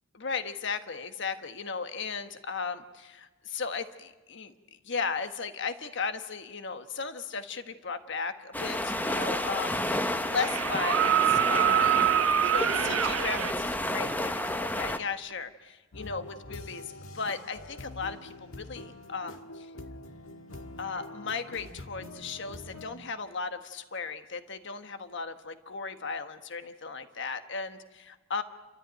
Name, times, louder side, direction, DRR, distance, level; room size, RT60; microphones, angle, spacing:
voice 1, 0.1-4.5 4.8-12.0 12.4-16.8 17.1-19.7 20.8-28.4, left 5 dB, 60° left, 8 dB, 1.3 m, -36 dB
sound 1, 8.5-15.0, left 1 dB, 10° left, 0.8 m, -31 dB
sound 2, 10.3-13.5 15.3-15.4, right 9 dB, 75° right, 0.6 m, -25 dB
sound 3, 15.9-22.9, left 2 dB, 85° left, 1.6 m, -45 dB
29.5 x 13.5 x 9.2 m, 1.2 s
head